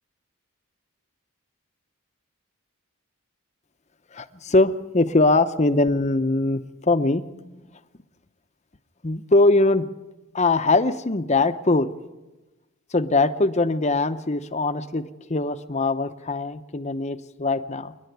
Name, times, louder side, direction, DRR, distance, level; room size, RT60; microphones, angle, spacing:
voice 1, 4.1-7.6 9.0-9.9 10.3-11.9 12.9-17.9, left 2 dB, 30° left, 11 dB, 0.8 m, -22 dB
28.0 x 11.0 x 9.3 m, 1.1 s
head